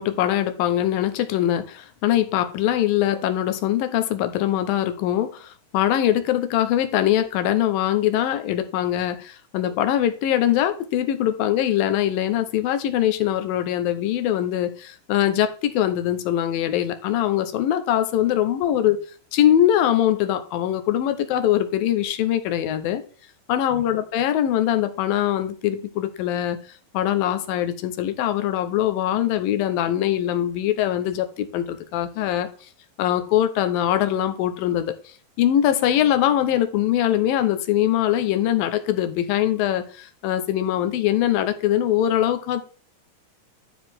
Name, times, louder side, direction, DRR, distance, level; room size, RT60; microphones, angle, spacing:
voice 1, 0.0-19.0 19.3-23.0 23.5-26.6 26.9-32.5 33.0-34.9 35.4-42.6, left 11 dB, 75° left, 2.5 m, -22 dB
12.0 x 4.7 x 3.6 m
omnidirectional pair, 4.5 m